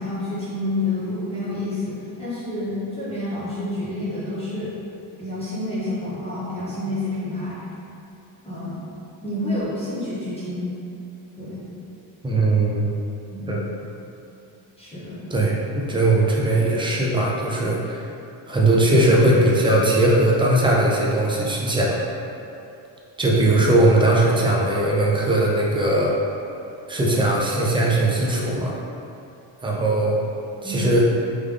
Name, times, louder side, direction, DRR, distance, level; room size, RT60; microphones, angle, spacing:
voice 1, 0.0-4.8 5.2-7.6 8.4-8.8 9.2-10.7 11.4-11.7 13.3-13.6 14.8-15.2 30.6-30.8, left 1 dB, 15° left, -11 dB, 0.7 m, -29 dB
voice 2, 12.2-13.0 13.5-13.6 15.3-18.0 18.5-22.0 23.2-26.1 26.9-28.7 29.6-30.2 30.6-31.0, right 1 dB, 10° right, -4 dB, 0.3 m, -19 dB
3.6 x 3.4 x 3.2 m, 2.7 s
cardioid pair, 165°, 46 cm